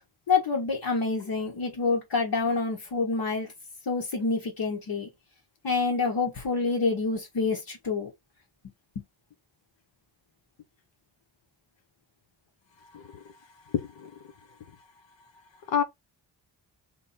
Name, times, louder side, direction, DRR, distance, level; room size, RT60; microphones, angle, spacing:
voice 1, 0.3-3.5 3.9-5.1 5.6-8.1 9.0-9.1, left 4 dB, 70° left, 1.8 m, -27 dB
voice 2, 12.9-13.2 13.7-14.2 15.7-15.8, left 8 dB, 90° left, 0.8 m, -29 dB
3.9 x 3.1 x 4.3 m
cardioid pair, 55°, 44 cm